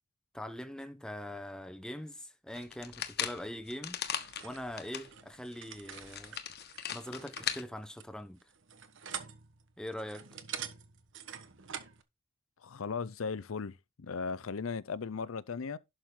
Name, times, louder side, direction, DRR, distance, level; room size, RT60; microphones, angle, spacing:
voice 1, 0.3-4.0 4.4-6.4 6.9-8.4 9.8-10.3, left 1 dB, 5° left, 0.9 m, -42 dB
sound 1, 2.5-5.1 5.5-5.6 5.9-7.6, left 9 dB, 55° left, 1.3 m, -38 dB
sound 2, 4.1-12.0, right 8 dB, 65° right, 1.3 m, -46 dB
voice 2, 12.6-15.8, left 5 dB, 75° left, 0.6 m, -37 dB
11.5 x 6.3 x 3.8 m
head